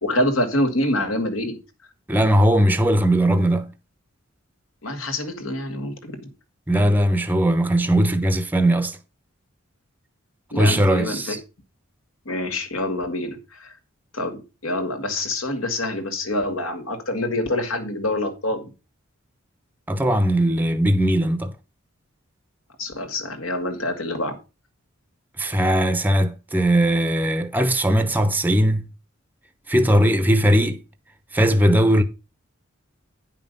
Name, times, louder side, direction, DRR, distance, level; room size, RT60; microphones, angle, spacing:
voice 1, 0.0-1.6 4.8-6.3 10.5-11.4 12.3-13.7 14.1-18.7 22.8-24.4, left 1 dB, 70° left, 2.1 m, -26 dB
voice 2, 2.1-3.7 6.7-9.0 10.6-11.4 19.9-21.5 25.4-28.9 29.7-30.8 31.3-32.0, right 1 dB, 10° right, 0.8 m, -19 dB
9.8 x 5.6 x 5.4 m
head